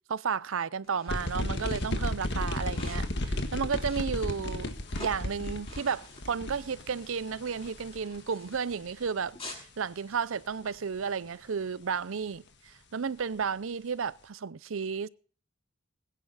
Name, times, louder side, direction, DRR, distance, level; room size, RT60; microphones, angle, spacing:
voice 1, 0.1-4.7 5.0-15.1, right 6 dB, 75° right, 0.6 m, -33 dB
sound 1, 0.8-9.7, left 2 dB, 25° left, 7.1 m, -49 dB
sound 2, 1.1-9.1, left 1 dB, 55° left, 1.7 m, -34 dB
21.5 x 10.0 x 4.1 m
head